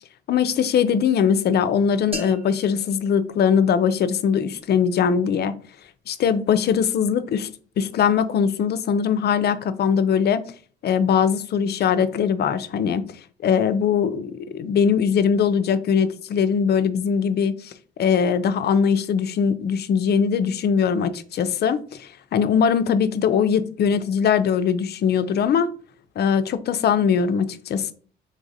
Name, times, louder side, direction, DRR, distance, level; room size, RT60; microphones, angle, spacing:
voice 1, 0.3-5.6 6.1-7.5 7.8-10.4 10.8-13.0 13.4-17.7 18.0-25.7 26.2-27.9, left 7 dB, 55° left, 0.4 m, -21 dB
sound 1, 2.1-4.1, equal, 30° right, 1.2 m, -39 dB
3.8 x 3.4 x 2.6 m
cardioid pair, 90°, 20 cm